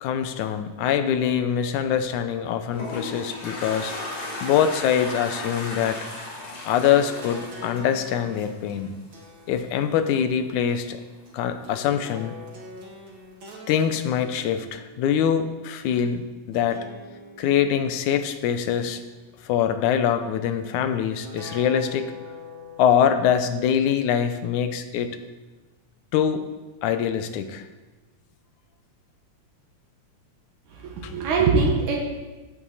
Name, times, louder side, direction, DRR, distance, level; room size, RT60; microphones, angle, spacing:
voice 1, 0.0-3.9 4.4-6.0 6.6-8.9 9.5-11.0 11.3-12.3 13.7-16.2 16.5-16.8 17.4-19.0 19.5-22.1 22.8-25.2 26.1-26.4 26.8-27.6 31.0-31.1, left 8 dB, 80° left, 9 dB, 2.2 m, -23 dB
Toilet flush, 2.4-8.7, left 2 dB, 50° left, 4.2 m, -35 dB
sound 1, 6.5-15.9 16.5-18.1 18.6-19.7 21.2-23.2, left 2 dB, 40° right, 2.4 m, -44 dB
voice 2, 30.7-32.1, right 4 dB, 80° right, 0 dB, 2.9 m, -22 dB
16.0 x 8.7 x 4.1 m, 1.2 s
omnidirectional pair, 3.5 m